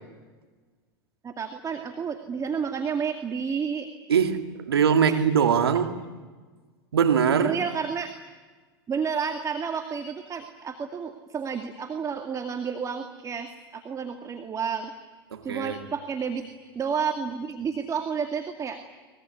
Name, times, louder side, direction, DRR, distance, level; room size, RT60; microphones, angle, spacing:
voice 1, 1.2-3.9 5.0-5.2 7.4-8.1 8.9-14.9 15.4-16.4 16.7-18.8, right 6 dB, 25° right, 2.2 m, -30 dB
voice 2, 4.1-5.9 6.9-7.5 15.3-15.8, right 7 dB, 85° right, 2.2 m, -22 dB
23.5 x 21.5 x 9.6 m
hypercardioid pair, 90°, 12 cm